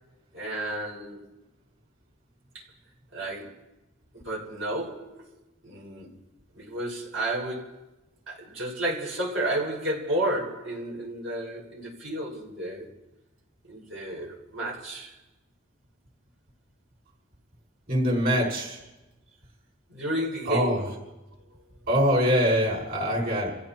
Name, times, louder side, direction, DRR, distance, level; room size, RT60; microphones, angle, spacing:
voice 1, 0.3-1.2 3.1-3.5 4.2-5.2 5.6-6.1 6.5-7.8 8.3-12.8 13.7-15.1 19.9-21.0, right 1 dB, 80° right, -4 dB, 6.5 m, -31 dB
voice 2, 17.9-18.8 20.5-20.8 21.9-23.5, equal, 50° right, -4 dB, 6.2 m, -23 dB
29.0 x 15.5 x 3.1 m, 1.0 s
head